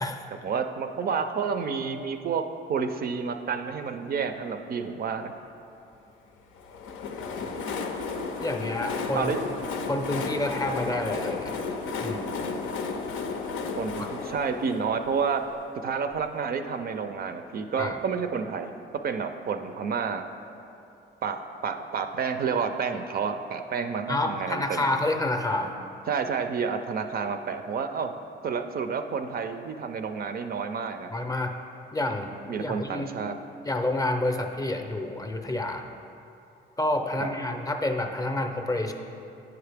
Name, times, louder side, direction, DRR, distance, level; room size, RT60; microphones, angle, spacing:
voice 1, 0.4-2.4 2.7-5.3 9.1-9.4 13.7-15.4 15.8-18.7 19.0-20.2 21.2-21.4 21.6-25.0 26.1-28.1 28.4-31.1 32.5-33.3 37.2-37.3, right 6 dB, 50° right, 7 dB, 0.4 m, -30 dB
Train, 6.6-16.2, left 4 dB, 90° left, 0.5 m, -33 dB
voice 2, 8.4-9.5 9.9-11.6 12.0-12.3 14.0-14.1 17.8-18.0 24.1-25.7 31.1-31.6 31.9-32.3 32.6-33.1 33.6-35.9 36.8-38.9, left 2 dB, 20° left, 4 dB, 0.5 m, -28 dB
8.8 x 4.8 x 3.4 m, 2.7 s
cardioid pair, 90°, 20 cm